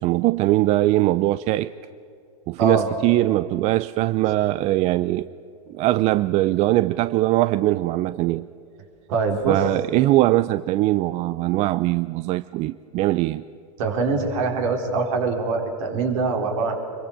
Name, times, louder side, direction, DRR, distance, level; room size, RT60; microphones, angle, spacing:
voice 1, 0.0-1.7 2.5-5.3 5.7-8.5 9.5-13.4, right 17 dB, 35° right, 15 dB, 0.5 m, -21 dB
voice 2, 9.1-9.6 13.8-16.8, right 4 dB, 60° right, 3 dB, 4.3 m, -23 dB
25.0 x 22.5 x 6.6 m, 2.5 s
hypercardioid pair, 115°, 20 cm